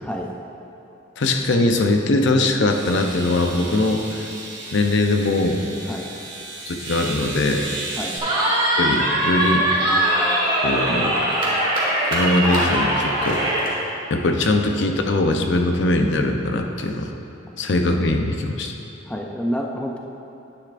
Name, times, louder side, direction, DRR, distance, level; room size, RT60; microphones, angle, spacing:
voice 1, 0.0-0.4 5.9-6.1 8.0-8.2 19.1-20.0, equal, 5° left, 0 dB, 0.5 m, -28 dB
voice 2, 1.2-4.3 4.7-5.6 6.7-7.7 8.8-9.7 10.6-11.2 12.1-13.7 14.1-17.1 17.6-18.7, left 2 dB, 60° left, 4 dB, 0.6 m, -21 dB
sound 1, 1.8-1.9 2.7-8.2, right 2 dB, 65° right, 2.1 m, -34 dB
Cheering, 8.2-13.7, right 1 dB, 25° right, 1.6 m, -21 dB
10.0 x 9.6 x 2.5 m, 2.9 s
head